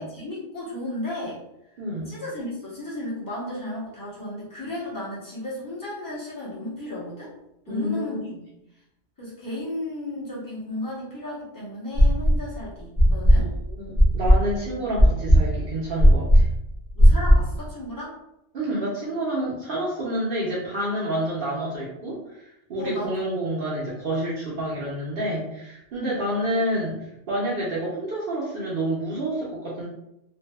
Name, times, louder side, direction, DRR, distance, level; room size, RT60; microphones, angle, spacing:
voice 1, 0.0-1.4 2.1-7.3 7.7-8.3 9.2-13.5 16.9-18.2 22.8-23.1 25.9-26.2, left 1 dB, 20° left, -7 dB, 0.8 m, -34 dB
voice 2, 1.8-2.2 7.7-8.2 13.4-16.4 18.5-27.0 27.3-29.9, right 1 dB, 60° right, -7 dB, 0.7 m, -28 dB
sound 1, 12.0-12.5 13.0-17.6, equal, 20° right, 0.6 m, -16 dB
2.6 x 2.3 x 2.2 m, 0.85 s
omnidirectional pair, 1.2 m